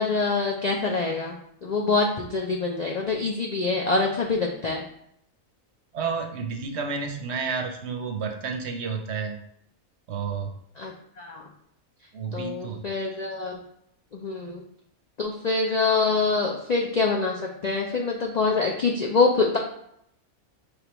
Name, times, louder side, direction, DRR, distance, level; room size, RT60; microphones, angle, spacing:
voice 1, 0.0-1.4 1.6-4.8 10.8-10.9 11.2-11.5 12.3-13.6 14.1-14.6 15.2-19.6, left 4 dB, 80° left, 0 dB, 0.3 m, -25 dB
voice 2, 5.9-9.4 10.1-10.5 12.1-12.8, right 5 dB, 65° right, 4 dB, 0.8 m, -30 dB
5.2 x 3.2 x 3.0 m, 0.73 s
omnidirectional pair, 1.4 m